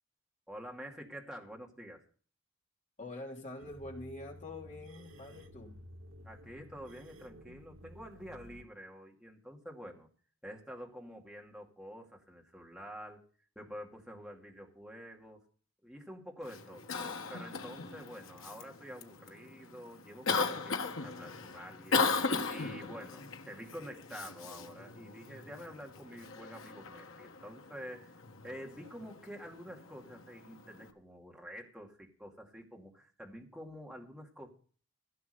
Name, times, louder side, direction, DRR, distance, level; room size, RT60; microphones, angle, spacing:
voice 1, 0.5-2.0 6.2-10.1 10.4-13.2 13.6-15.4 15.8-16.9 17.3-22.1 22.5-28.2 28.4-34.5, equal, 5° right, 0 dB, 2.4 m, -48 dB
voice 2, 3.0-5.8, left 2 dB, 35° left, 0 dB, 3.2 m, -45 dB
sound 1, 3.6-8.6, equal, 90° right, 1.3 m, -53 dB
Cough, 16.4-30.9, left 4 dB, 85° left, 1.3 m, -38 dB
16.0 x 6.8 x 6.6 m, 0.42 s
head